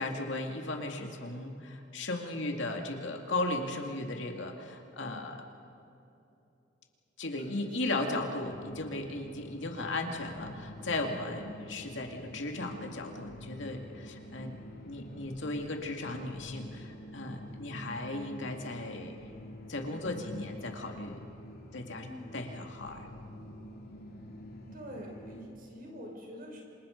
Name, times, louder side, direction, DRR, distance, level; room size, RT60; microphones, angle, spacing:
voice 1, 0.0-5.4 7.2-14.6 14.8-19.2 19.7-21.2 21.7-22.1 22.3-23.1, left 2 dB, 75° left, 3 dB, 2.4 m, -36 dB
voice 2, 7.5-8.0 22.0-22.4 24.7-26.6, equal, 50° right, 0 dB, 5.4 m, -46 dB
sound 1, 8.4-25.4, left 1 dB, 60° left, 3.1 m, -47 dB
27.5 x 26.5 x 5.3 m, 2.7 s
head